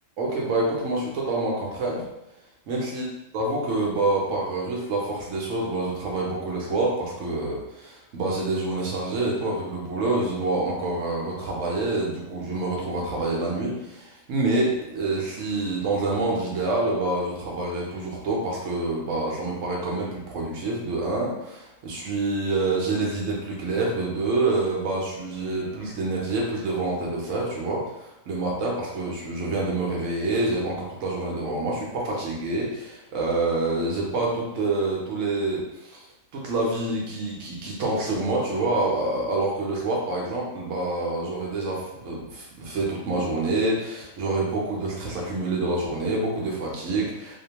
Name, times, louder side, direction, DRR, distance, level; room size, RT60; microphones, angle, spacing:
voice 1, 0.2-2.0 2.7-3.0 3.3-36.0 36.3-47.4, right 2 dB, 75° right, -2 dB, 0.9 m, -27 dB
2.5 x 2.2 x 2.8 m, 0.92 s
omnidirectional pair, 1.4 m